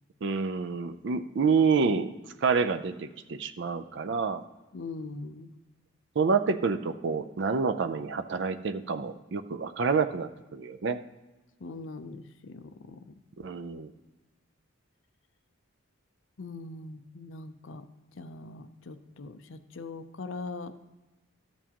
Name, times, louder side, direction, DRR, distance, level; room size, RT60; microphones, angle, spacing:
voice 1, 0.2-2.1 2.4-4.4 6.2-11.0 13.4-13.9, right 5 dB, 55° right, 10 dB, 0.4 m, -28 dB
voice 2, 4.7-5.5 11.6-13.2 16.4-17.9 18.1-20.7, left 3 dB, 65° left, 10 dB, 0.5 m, -41 dB
12.0 x 7.1 x 2.9 m, 1.1 s
head